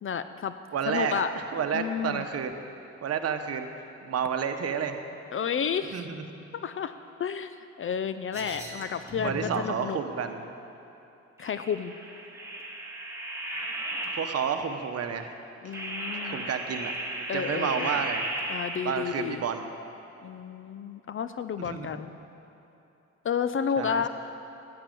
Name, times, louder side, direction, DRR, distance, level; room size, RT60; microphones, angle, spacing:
voice 1, 0.0-0.5 0.9-1.3 1.7-2.2 5.3-6.1 6.5-6.9 7.2-10.0 11.4-11.9 15.6-16.5 17.3-18.0 18.5-19.4 20.2-22.1 23.2-24.1, left 7 dB, 45° left, 11 dB, 0.5 m, -31 dB
voice 2, 0.7-2.6 3.0-3.7 4.0-5.0 5.9-6.2 9.2-10.5 14.0-15.3 15.6-15.7 16.2-18.3 18.8-19.7 21.6-22.0 23.8-24.1, right 7 dB, 55° right, 7 dB, 1.1 m, -31 dB
sound 1, 8.3-9.6 11.4-14.7 15.7-19.1, right 1 dB, 10° right, 2.6 m, -35 dB
11.5 x 8.7 x 9.2 m, 2.8 s
cardioid pair, 90°, 30 cm